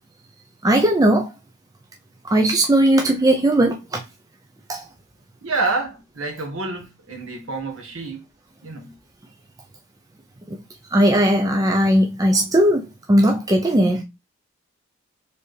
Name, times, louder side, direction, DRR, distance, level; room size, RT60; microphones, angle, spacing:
voice 1, 0.6-1.3 2.2-4.0 4.7-4.8 10.5-10.6 10.9-14.0, right 1 dB, 15° right, 0.4 m, -18 dB
voice 2, 5.4-8.2 8.6-9.0, right 3 dB, 70° right, 1.3 m, -28 dB
4.5 x 3.4 x 3.2 m
head